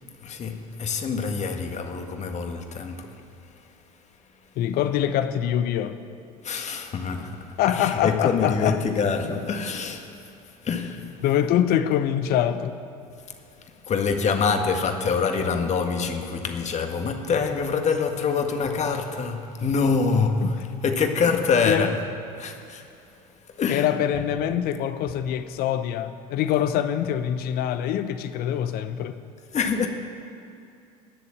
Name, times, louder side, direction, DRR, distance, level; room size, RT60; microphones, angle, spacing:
voice 1, 0.2-3.2 6.4-10.1 10.6-11.1 13.9-22.0 22.4-22.8 23.6-23.9 29.5-29.9, left 5 dB, 35° left, 1.7 m, -25 dB
voice 2, 4.6-6.0 7.6-8.8 11.2-12.8 20.4-20.5 21.7-21.9 23.7-29.2, left 10 dB, 50° left, 0.9 m, -24 dB
19.5 x 6.9 x 8.6 m
figure-of-eight pair, 70°, 20 cm